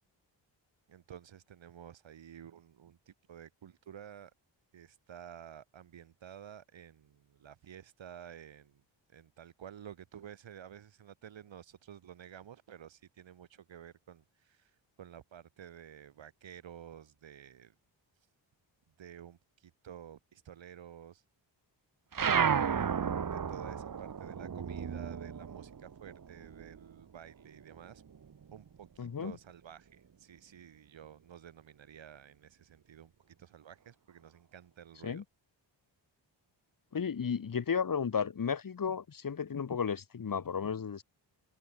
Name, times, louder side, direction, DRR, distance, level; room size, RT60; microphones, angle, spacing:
voice 1, 0.9-4.3 4.7-8.8 9.1-14.7 15.0-17.7 19.0-21.2 22.3-28.0 28.5-35.2, right 9 dB, 85° right, 7.2 m, -52 dB
sound 1, 22.1-27.0 27.3-28.8, right 7 dB, 45° right, 2.5 m, -33 dB
voice 2, 29.0-29.3 35.0-35.2 36.9-41.0, left 6 dB, 45° left, 3.3 m, -33 dB
wide cardioid pair, 140°, 44 cm